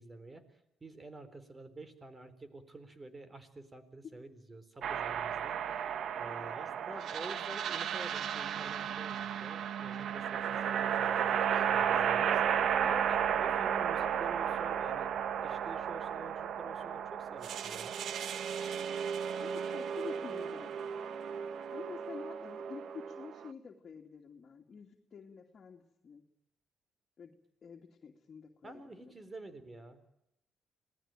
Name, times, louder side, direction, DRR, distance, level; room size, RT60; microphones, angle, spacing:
voice 1, 0.0-15.1 15.4-18.0 28.6-30.0, right 2 dB, 25° right, 12 dB, 4.0 m, -49 dB
sound 1, 4.8-23.5, right 8 dB, 65° right, 1.1 m, -34 dB
voice 2, 19.4-21.0 21.7-26.2 27.2-27.3 27.6-28.8, left 6 dB, 50° left, 1 dB, 2.6 m, -48 dB
26.5 x 19.0 x 9.1 m, 0.85 s
cardioid pair, 90°, 0 cm